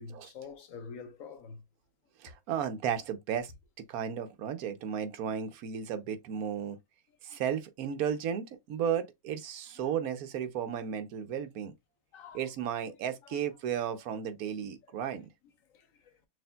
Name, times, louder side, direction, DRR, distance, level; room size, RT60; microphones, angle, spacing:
voice 1, 0.0-1.6 6.5-6.8 7.3-7.4 9.8-9.9 12.1-12.4 13.2-13.5 15.7-16.0, left 5 dB, 65° left, 1.1 m, -47 dB
voice 2, 2.2-3.5 3.9-6.8 7.2-11.7 12.3-15.3, right 8 dB, 75° right, 1.1 m, -34 dB
6.2 x 2.5 x 2.2 m
omnidirectional pair, 1.6 m